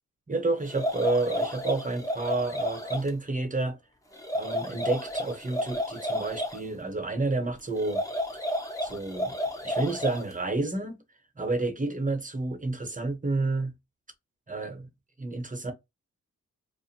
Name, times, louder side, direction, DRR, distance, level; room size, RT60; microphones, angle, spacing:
voice 1, 0.3-3.8 4.3-8.0 8.8-9.4 9.6-11.0 11.4-13.7 14.5-14.9 15.2-15.7, right 2 dB, 25° right, 0.9 m, -30 dB
sound 1, 0.6-3.1 4.1-6.6 7.8-10.3, equal, 10° left, 0.9 m, -31 dB
2.5 x 2.4 x 2.7 m
cardioid pair, 60°, 30 cm